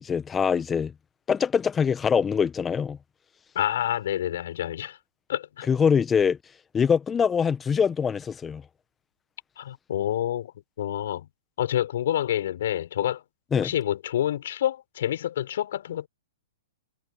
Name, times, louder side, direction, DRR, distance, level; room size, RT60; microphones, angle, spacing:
voice 1, 0.0-0.9 1.3-3.0 5.7-6.4 6.7-8.6 13.5-13.7, left 6 dB, 15° left, 1.4 m, -23 dB
voice 2, 3.5-5.0 5.3-5.7 9.6-10.5 10.8-11.3 11.6-13.2 13.6-16.1, left 11 dB, 60° left, 4.5 m, -28 dB
hypercardioid pair, 115°, 0 cm